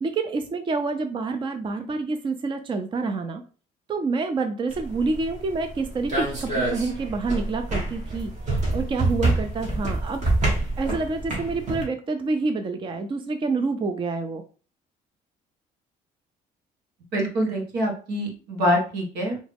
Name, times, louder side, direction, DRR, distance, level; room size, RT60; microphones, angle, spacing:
voice 1, 0.0-3.4 3.9-10.3 10.8-14.4, right 3 dB, 30° right, 7 dB, 0.5 m, -27 dB
sound 1, 4.7-11.8, right 2 dB, 45° right, 2.4 m, -27 dB
voice 2, 17.1-19.4, equal, 80° right, 1 dB, 1.7 m, -25 dB
4.8 x 3.1 x 3.4 m, 0.37 s
cardioid pair, 110°, 17 cm